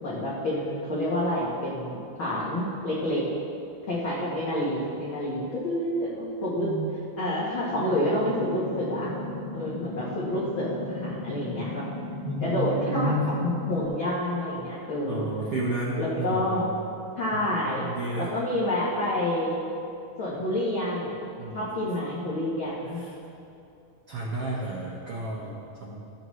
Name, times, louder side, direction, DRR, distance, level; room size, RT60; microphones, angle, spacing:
voice 1, 0.0-3.3 3.9-6.7 7.2-9.1 9.5-11.9 12.4-15.3 16.0-16.6 17.2-17.9 18.1-19.5 20.2-21.2 21.5-23.0, left 1 dB, 80° left, -7 dB, 1.1 m, -28 dB
sound 1, 7.7-13.9, left 2 dB, 60° left, 2.6 m, -36 dB
voice 2, 12.2-13.3 15.0-16.6 17.8-18.3 21.4-21.7 23.0-23.1 24.1-26.1, right 1 dB, 85° right, -5 dB, 1.2 m, -31 dB
14.0 x 7.8 x 3.1 m, 2.7 s
omnidirectional pair, 4.3 m